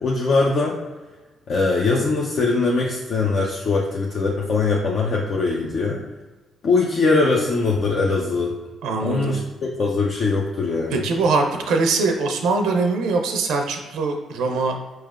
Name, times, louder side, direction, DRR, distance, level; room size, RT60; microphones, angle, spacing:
voice 1, 0.0-0.8 1.5-6.0 6.6-8.6 9.0-11.0, left 3 dB, 60° left, -3 dB, 0.5 m, -21 dB
voice 2, 8.8-9.4 10.9-14.8, right 3 dB, 80° right, 4 dB, 0.5 m, -22 dB
4.7 x 3.1 x 2.4 m, 1.2 s
supercardioid pair, 60°, 0 cm